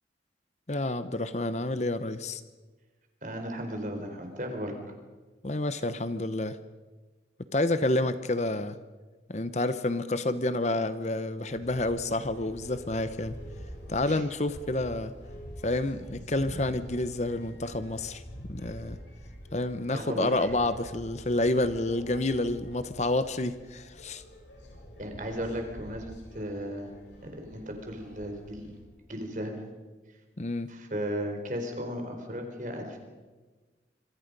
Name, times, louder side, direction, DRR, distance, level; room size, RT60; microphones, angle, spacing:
voice 1, 0.7-2.4 5.4-6.6 7.5-8.8 9.3-13.4 13.9-15.1 15.6-18.2 18.5-19.0 19.5-24.2 30.4-30.7, left 2 dB, 40° left, 12 dB, 0.9 m, -29 dB
voice 2, 3.2-4.7 14.0-14.2 19.9-20.5 25.0-26.9 27.2-28.7 29.1-29.6 30.7-33.0, equal, 45° right, 4 dB, 4.3 m, -35 dB
sound 1, 11.5-28.8, equal, 85° left, 7.8 m, -46 dB
26.5 x 25.0 x 5.4 m, 1.3 s
head